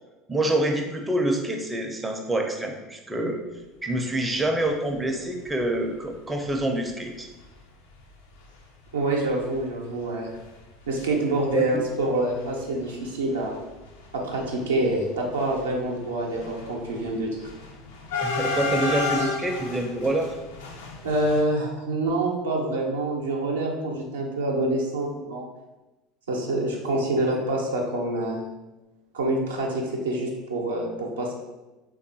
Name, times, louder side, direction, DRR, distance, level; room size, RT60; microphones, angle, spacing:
voice 1, 0.3-3.4 3.8-7.3 11.5-11.9 18.2-20.3, right 1 dB, 15° right, 3 dB, 0.4 m, -26 dB
sound 1, 5.4-5.6 6.1-6.2 6.4-6.6 7.4-7.5 7.9-8.1 8.4-8.5 8.8-11.1 11.3-12.0 12.3-21.4, left 3 dB, 75° left, 0.4 m, -33 dB
voice 2, 8.9-10.4 10.9-13.6 14.1-17.5 21.0-25.5 26.3-28.4 29.1-31.3, right 2 dB, 80° right, -1 dB, 0.5 m, -26 dB
3.4 x 2.3 x 2.7 m, 1.1 s
hypercardioid pair, 75°, 0 cm